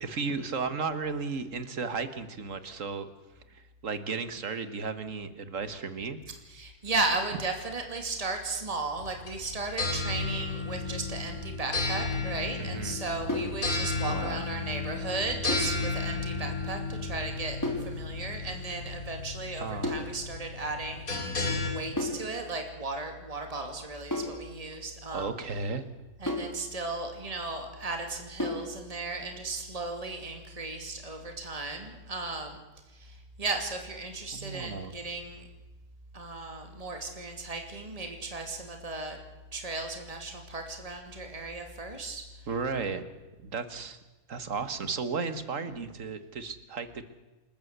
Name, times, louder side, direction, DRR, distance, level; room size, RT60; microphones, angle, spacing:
voice 1, 0.0-3.1 3.5-6.2 12.6-13.0 14.1-14.5 19.6-19.9 25.1-25.9 34.3-34.9 42.5-43.0 43.4-44.0 44.3-47.0, right 4 dB, 55° right, 11 dB, 1.9 m, -34 dB
voice 2, 6.5-17.6 17.8-21.1 21.6-25.3 26.2-32.6 33.0-35.5 36.1-39.2 39.5-42.3, right 3 dB, 25° right, 4 dB, 2.6 m, -35 dB
sound 1, 9.0-21.7, left 3 dB, 65° left, 4.4 m, -33 dB
sound 2, 13.3-13.6 15.5-15.8 17.6-17.9 19.8-20.1 22.0-22.3 24.1-24.4 26.3-26.6 28.4-28.7, left 1 dB, 10° left, 4.0 m, -32 dB
28.5 x 14.0 x 8.1 m, 1.2 s
omnidirectional pair, 1.6 m